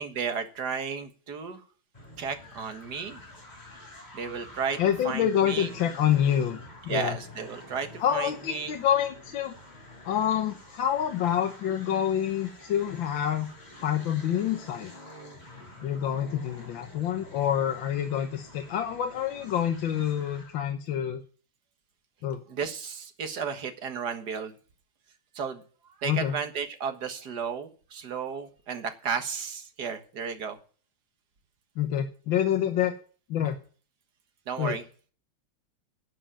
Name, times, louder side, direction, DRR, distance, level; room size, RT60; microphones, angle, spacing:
voice 1, 0.0-1.6 2.2-3.2 4.1-4.8 5.0-5.7 6.9-8.7 22.5-24.6 25.4-25.6 26.0-30.6 34.5-34.8, right 6 dB, 55° right, 8 dB, 1.9 m, -33 dB
sound 1, 1.9-20.6, left 1 dB, 20° left, 3.5 m, -48 dB
voice 2, 4.8-6.6 6.8-7.2 8.0-9.5 10.0-13.5 13.8-14.9 15.8-21.2 22.2-22.4 26.1-26.4 31.8-32.9 33.3-33.6 34.6-34.8, left 10 dB, 70° left, 6 dB, 1.7 m, -27 dB
11.5 x 7.5 x 8.9 m, 0.40 s
omnidirectional pair, 2.3 m